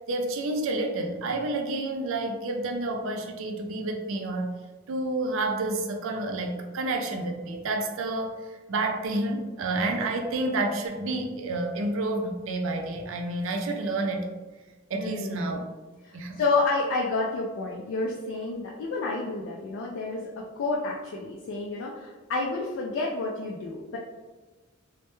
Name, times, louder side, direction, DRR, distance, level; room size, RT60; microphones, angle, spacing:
voice 1, 0.1-4.5 4.9-14.3 14.9-15.6 16.1-16.4, right 2 dB, 65° right, 3 dB, 0.4 m, -29 dB
voice 2, 15.0-15.4 16.0-24.0, left 3 dB, 65° left, -2 dB, 0.3 m, -29 dB
2.1 x 2.1 x 2.9 m, 1.3 s
head